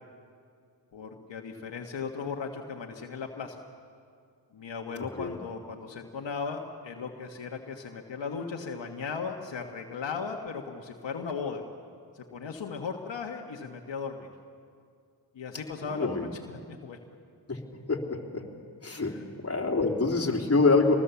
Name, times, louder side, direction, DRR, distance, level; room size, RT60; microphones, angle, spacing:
voice 1, 0.9-3.6 4.5-11.6 12.1-14.3 15.3-17.0 18.9-19.2, left 5 dB, 75° left, 2 dB, 1.5 m, -37 dB
voice 2, 16.0-16.3 17.5-17.6 17.9-18.0 18.3-18.4 18.8-19.1 19.4-20.9, left 3 dB, 30° left, 0 dB, 3.3 m, -25 dB
25.0 x 20.0 x 7.1 m, 2.3 s
cardioid pair, 50°, 44 cm